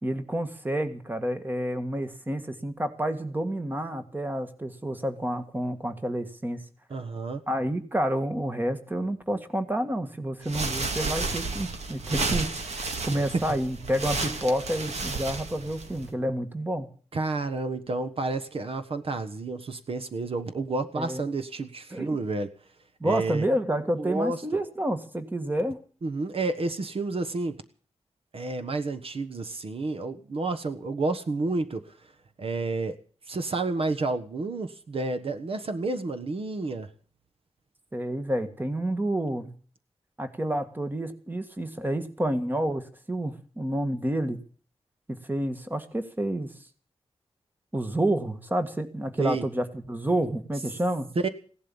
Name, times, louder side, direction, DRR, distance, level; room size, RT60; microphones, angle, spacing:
voice 1, 0.0-6.6 7.5-16.9 20.9-21.2 21.9-22.2 23.0-25.8 37.9-39.5 40.2-44.4 45.1-46.5 47.7-51.1, right 1 dB, 15° right, 8 dB, 1.8 m, -29 dB
voice 2, 6.9-7.4 13.1-13.4 17.1-22.5 23.0-23.5 24.0-24.4 26.0-27.6 28.3-31.9 32.4-33.0 33.3-36.9 49.2-49.5 51.2-51.3, right 3 dB, 60° right, 9 dB, 1.3 m, -30 dB
sound 1, 10.4-16.1, right 3 dB, 85° right, 2.3 m, -32 dB
17.0 x 12.0 x 7.0 m, 0.43 s
wide cardioid pair, 125°, 11 cm